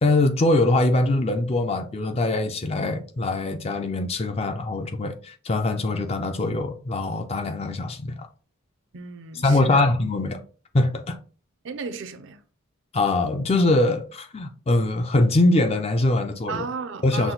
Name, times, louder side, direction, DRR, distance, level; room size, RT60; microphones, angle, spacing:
voice 1, 0.0-8.3 9.4-10.4 10.7-11.2 12.9-16.7 17.0-17.3, left 2 dB, 30° left, 0.4 m, -22 dB
voice 2, 8.9-9.9 11.6-12.4 16.5-17.3, right 5 dB, 55° right, 0.5 m, -34 dB
5.9 x 2.1 x 3.8 m
head